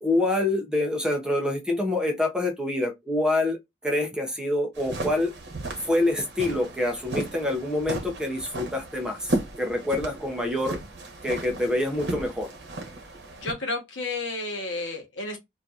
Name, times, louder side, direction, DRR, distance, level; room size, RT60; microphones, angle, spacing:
voice 1, 0.0-3.6 3.8-5.3 5.8-10.8 11.2-12.5, left 1 dB, 5° right, 0.5 m, -26 dB
sound 1, 4.7-13.5, right 2 dB, 65° right, 0.9 m, -35 dB
voice 2, 13.4-15.4, left 2 dB, 90° left, 1.0 m, -31 dB
2.7 x 2.4 x 2.3 m
head